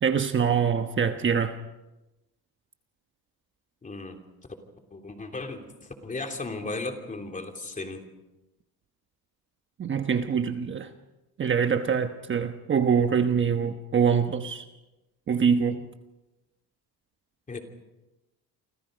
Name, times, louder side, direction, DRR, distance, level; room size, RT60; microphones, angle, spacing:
voice 1, 0.0-1.6 9.8-10.9 11.4-14.6 15.3-15.8, right 7 dB, 30° right, 6 dB, 1.2 m, -24 dB
voice 2, 3.8-4.2 4.9-8.0 17.5-17.6, left 3 dB, 20° left, 4 dB, 3.2 m, -36 dB
29.5 x 25.5 x 5.2 m, 1.0 s
cardioid pair, 140°, 38 cm